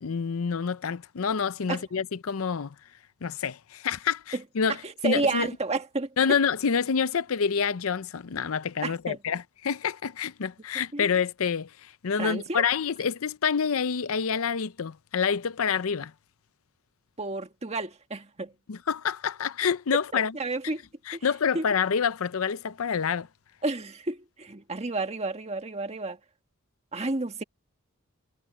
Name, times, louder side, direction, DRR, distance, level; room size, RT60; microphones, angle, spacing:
voice 1, 0.0-2.7 3.2-4.8 5.0-5.5 6.2-11.7 12.0-16.1 18.7-20.3 21.1-23.3, left 6 dB, 65° left, 0.6 m, -27 dB
voice 2, 4.8-6.4 8.8-9.2 10.9-11.1 12.2-12.6 17.2-18.5 20.1-20.8 21.1-21.3 21.5-21.6 23.6-26.2 26.9-27.4, right 2 dB, 30° right, 1.7 m, -31 dB
head